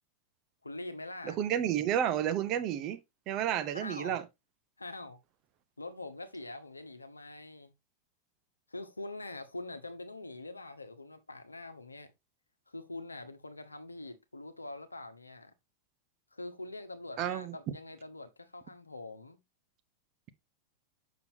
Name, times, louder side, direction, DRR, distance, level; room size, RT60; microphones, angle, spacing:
voice 1, 0.6-1.4 3.7-4.2 4.8-5.2 5.8-7.7 8.7-12.1 12.7-15.5 16.3-19.4, left 2 dB, 80° left, 1.0 m, -44 dB
voice 2, 1.2-3.0 3.3-4.2 17.2-17.6, right 10 dB, 40° right, 0.9 m, -31 dB
7.0 x 6.2 x 2.7 m
figure-of-eight pair, 90°, 0 cm